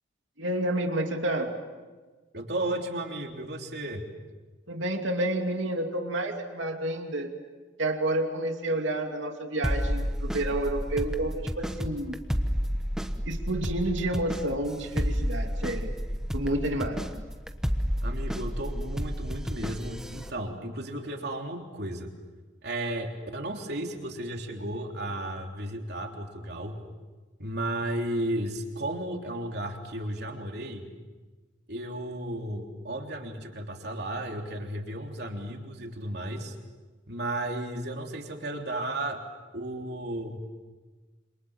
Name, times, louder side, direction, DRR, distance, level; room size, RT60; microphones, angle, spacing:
voice 1, 0.4-1.5 4.7-7.3 7.8-12.2 13.3-15.9 16.3-17.1, right 1 dB, 85° right, 3 dB, 2.8 m, -29 dB
voice 2, 2.3-4.1 18.0-22.1 22.6-26.8 27.4-30.9 31.7-36.6 37.1-39.2 39.5-40.4, right 1 dB, 55° right, 2 dB, 3.5 m, -34 dB
sound 1, 9.6-20.3, equal, 5° right, 1.2 m, -31 dB
27.5 x 27.0 x 7.4 m, 1.3 s
head